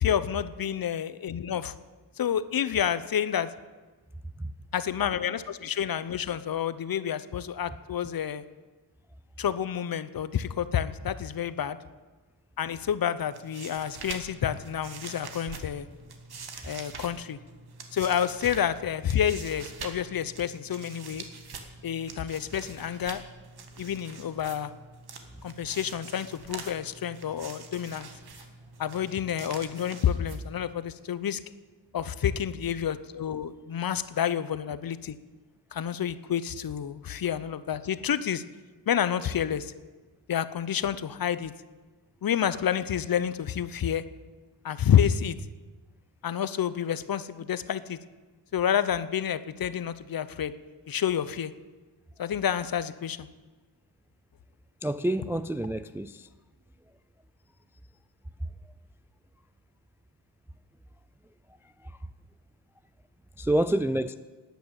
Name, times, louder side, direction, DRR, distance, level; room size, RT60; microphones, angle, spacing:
voice 1, 0.0-1.7 2.2-3.5 4.7-8.4 9.4-11.8 12.6-15.9 16.6-17.4 17.9-21.2 21.8-23.2 23.8-24.7 25.4-28.1 28.8-31.4 31.9-35.2 35.7-38.4 38.9-39.7 40.3-41.5 42.2-44.0 44.6-45.4 46.2-48.0 48.5-50.5 50.9-51.5 52.2-53.3, left 9 dB, 50° left, 14 dB, 0.8 m, -29 dB
sound 1, 13.2-30.8, right 4 dB, 55° right, 1.8 m, -45 dB
voice 2, 54.8-56.3 61.8-61.9 63.4-64.1, right 1 dB, 5° right, 12 dB, 0.3 m, -28 dB
12.0 x 9.3 x 8.9 m, 1.3 s
cardioid pair, 90°, 45 cm